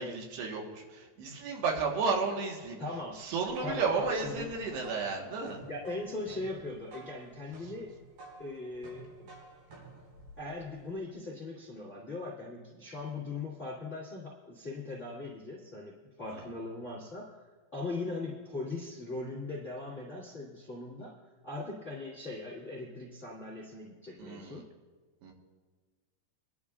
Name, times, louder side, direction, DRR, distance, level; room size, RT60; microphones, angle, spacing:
voice 1, 0.0-2.8 3.2-5.6 16.3-16.4 24.2-24.6 25.2-25.3, right 4 dB, 85° right, 0 dB, 3.6 m, -33 dB
voice 2, 2.8-3.2 3.6-4.5 5.6-7.9 8.4-9.3 10.4-17.3 17.7-21.1 21.4-24.6, left 2 dB, 40° left, -5 dB, 1.0 m, -40 dB
sound 1, 3.2-11.0, right 2 dB, 65° right, 6.6 m, -52 dB
25.0 x 11.5 x 2.4 m, 1.4 s
omnidirectional pair, 4.7 m